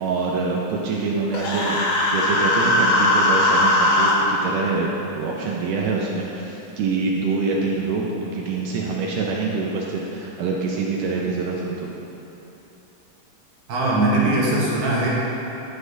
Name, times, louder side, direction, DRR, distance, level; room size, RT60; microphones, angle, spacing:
voice 1, 0.0-11.9, right 4 dB, 90° right, -2 dB, 1.8 m, -25 dB
Human voice, 1.3-4.1, left 1 dB, 75° left, 2.4 m, -19 dB
voice 2, 13.7-15.1, right 2 dB, 65° right, -6 dB, 2.0 m, -20 dB
11.0 x 6.3 x 2.6 m, 3.0 s
omnidirectional pair, 4.5 m